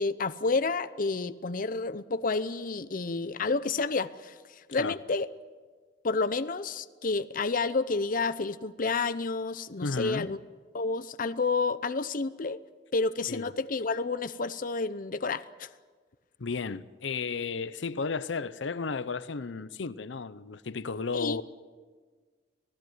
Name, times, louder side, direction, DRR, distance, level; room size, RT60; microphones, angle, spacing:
voice 1, 0.0-5.3 6.0-10.4 10.7-12.6 12.9-15.7 21.1-21.4, left 3 dB, 50° left, 0.7 m, -30 dB
voice 2, 9.8-10.3 13.3-13.4 16.4-21.4, left 4 dB, 80° left, 0.7 m, -33 dB
26.0 x 16.5 x 9.4 m
head